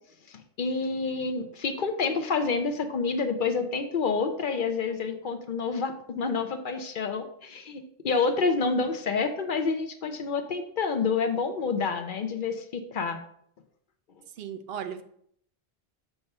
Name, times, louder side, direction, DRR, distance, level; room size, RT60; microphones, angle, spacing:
voice 1, 0.3-13.2, left 4 dB, 55° left, 7 dB, 0.7 m, -28 dB
voice 2, 14.4-15.0, right 8 dB, 70° right, 10 dB, 0.8 m, -36 dB
5.9 x 3.4 x 5.3 m, 0.68 s
omnidirectional pair, 1.1 m